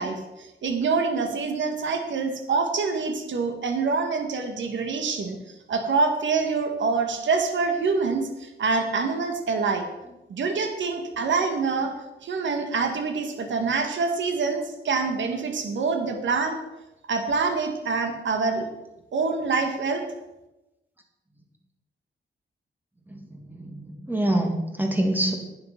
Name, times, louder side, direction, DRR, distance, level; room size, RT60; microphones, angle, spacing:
voice 1, 0.0-9.8 10.3-11.9 12.2-16.6 17.1-18.7 19.1-20.0, right 4 dB, 75° right, 5 dB, 1.8 m, -26 dB
voice 2, 23.1-25.3, right 1 dB, 10° right, 2 dB, 2.6 m, -26 dB
10.5 x 9.4 x 5.9 m, 0.97 s
cardioid pair, 95°, 19 cm